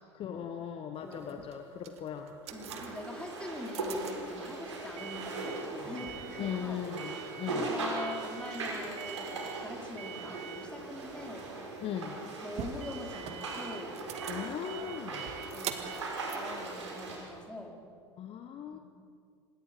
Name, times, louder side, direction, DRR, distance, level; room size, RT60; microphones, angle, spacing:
voice 1, 0.1-2.4 6.4-7.7 11.8-12.2 14.3-15.3 18.2-18.8, left 8 dB, 40° left, 6 dB, 1.4 m, -39 dB
voice 2, 1.0-1.4 2.5-6.8 7.4-11.8 12.4-14.0 14.7-15.0 15.5-16.0 16.3-17.8 18.7-18.8, left 1 dB, 5° left, 1 dB, 4.1 m, -44 dB
sound 1, 1.0-17.5, right 9 dB, 45° right, 2.0 m, -46 dB
sound 2, 2.5-17.2, right 2 dB, 80° right, 7.1 m, -39 dB
26.0 x 21.5 x 5.2 m, 2.2 s
hypercardioid pair, 85°, 15 cm